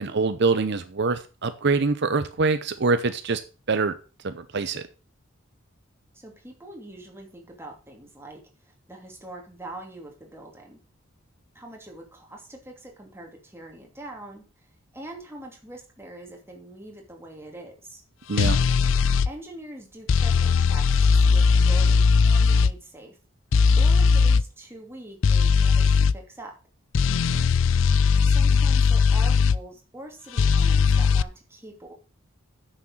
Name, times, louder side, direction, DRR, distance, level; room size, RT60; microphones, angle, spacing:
voice 1, 0.0-3.4 3.7-4.0 4.2-4.8 18.3-18.6 27.4-27.5, right 4 dB, 60° right, 10 dB, 0.7 m, -24 dB
voice 2, 6.1-10.8 11.5-14.4 14.9-18.0 19.2-23.2 23.7-26.5 28.2-31.9, right 1 dB, 10° right, 1 dB, 2.6 m, -43 dB
sound 1, 18.4-19.3 20.1-22.7 23.5-24.4 25.2-26.1 26.9-29.6 30.4-31.2, left 5 dB, 70° left, 0.4 m, -19 dB
9.5 x 6.6 x 6.3 m, 0.36 s
head